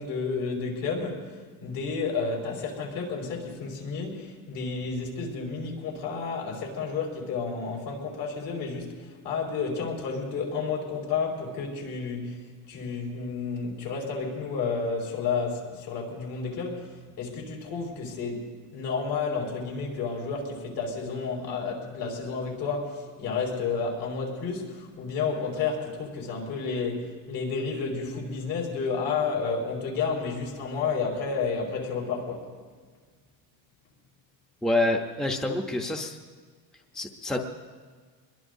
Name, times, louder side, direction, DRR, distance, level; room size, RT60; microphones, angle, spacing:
voice 1, 0.0-32.5, left 5 dB, 65° left, -1 dB, 4.5 m, -31 dB
voice 2, 34.6-36.2 36.9-37.4, left 2 dB, ahead, 2 dB, 0.7 m, -27 dB
24.0 x 21.5 x 2.7 m, 1.5 s
cardioid pair, 170°, 37 cm